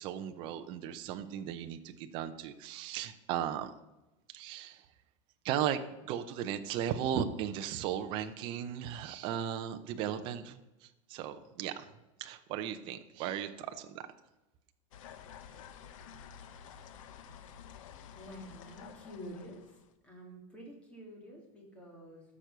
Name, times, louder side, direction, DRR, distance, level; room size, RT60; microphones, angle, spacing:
voice 1, 0.0-3.7 4.3-4.9 5.4-11.9 12.2-14.0, right 9 dB, 30° right, 8 dB, 0.6 m, -36 dB
sound 1, 14.9-19.9, left 8 dB, 75° left, 1.1 m, -51 dB
voice 2, 18.2-19.6 20.0-22.2, equal, 5° left, -2 dB, 2.1 m, -48 dB
15.0 x 6.1 x 6.7 m, 1.0 s
supercardioid pair, 180°, 17 cm